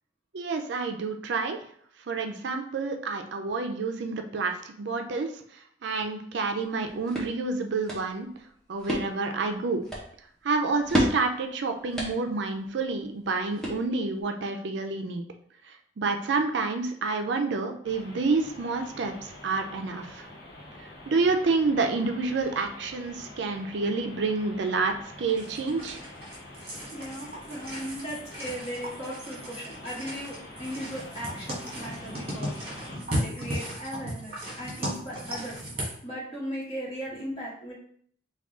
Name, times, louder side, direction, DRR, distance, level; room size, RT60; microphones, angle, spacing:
voice 1, 0.3-1.6 2.1-5.3 5.8-8.3 8.7-9.8 10.4-15.3 16.0-20.3 21.1-26.0, right 4 dB, 70° right, 5 dB, 0.4 m, -28 dB
sound 1, 6.6-14.2, equal, 5° left, 0.7 m, -34 dB
sound 2, 17.8-33.0, left 1 dB, 55° left, 0.7 m, -46 dB
sound 3, 25.3-36.0, equal, 30° right, 1.3 m, -36 dB
voice 2, 26.9-32.5 33.2-35.6 36.0-37.7, equal, 30° left, -7 dB, 1.3 m, -37 dB
3.5 x 2.3 x 3.6 m, 0.62 s
head